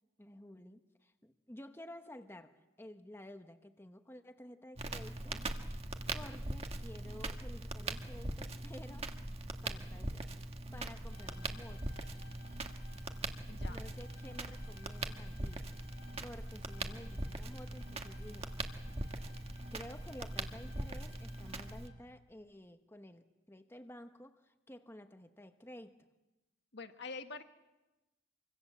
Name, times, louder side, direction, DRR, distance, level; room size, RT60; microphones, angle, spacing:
voice 1, 0.2-5.4 6.1-9.1 9.6-10.3 10.7-12.0 13.7-15.7 16.2-18.5 19.7-25.9, left 1 dB, 10° left, 7 dB, 1.1 m, -52 dB
Crackle, 4.8-21.9, right 2 dB, 30° right, 1.5 m, -41 dB
sound 1, 11.0-22.2, left 6 dB, 90° left, 4.1 m, -62 dB
voice 2, 13.5-13.8 26.7-27.4, left 4 dB, 60° left, 7 dB, 1.7 m, -46 dB
26.5 x 25.5 x 7.4 m, 1.0 s
head